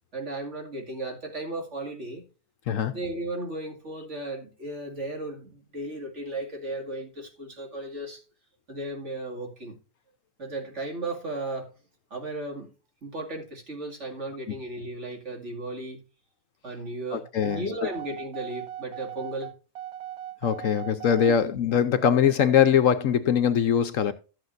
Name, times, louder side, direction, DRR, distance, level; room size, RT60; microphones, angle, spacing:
voice 1, 0.1-2.3 2.9-8.2 8.7-9.8 10.4-11.7 12.1-12.7 13.0-16.0 16.6-19.5 21.3-21.4, right 2 dB, 50° right, 2.6 m, -35 dB
voice 2, 2.7-3.0 17.1-17.6 20.4-24.1, left 8 dB, 65° left, 1.0 m, -22 dB
sound 1, 17.4-21.4, right 11 dB, 75° right, 1.2 m, -39 dB
13.0 x 7.9 x 2.6 m
omnidirectional pair, 1.6 m